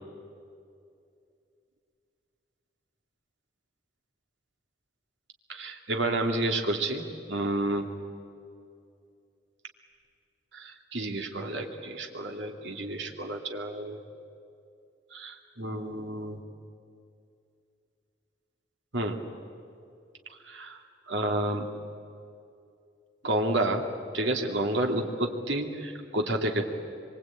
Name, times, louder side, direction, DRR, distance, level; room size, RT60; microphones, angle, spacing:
voice 1, 5.5-7.9 10.5-14.0 15.1-16.4 18.9-19.2 20.5-20.8 21.1-21.7 23.2-23.8 24.1-26.6, right 1 dB, 75° right, 3 dB, 2.5 m, -30 dB
25.0 x 23.5 x 8.9 m, 2.5 s
head